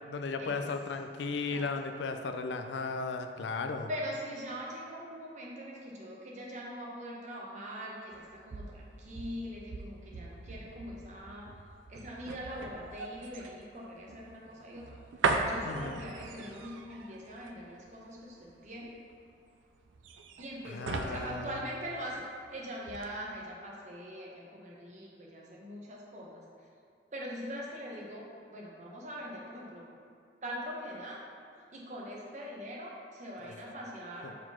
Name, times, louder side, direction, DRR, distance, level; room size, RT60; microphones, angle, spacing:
voice 1, 0.1-3.9 15.6-16.0 20.6-21.6 33.5-33.6 34.2-34.3, left 4 dB, 70° left, 6 dB, 0.4 m, -35 dB
voice 2, 3.9-11.5 11.9-15.0 15.5-18.9 20.4-22.2 22.5-26.4 27.1-29.9 30.4-31.2 31.7-34.4, equal, 40° right, -3 dB, 0.9 m, -42 dB
sound 1, 8.1-22.5 22.8-23.1, right 3 dB, 90° right, 0.4 m, -38 dB
4.8 x 4.0 x 5.6 m, 2.4 s
head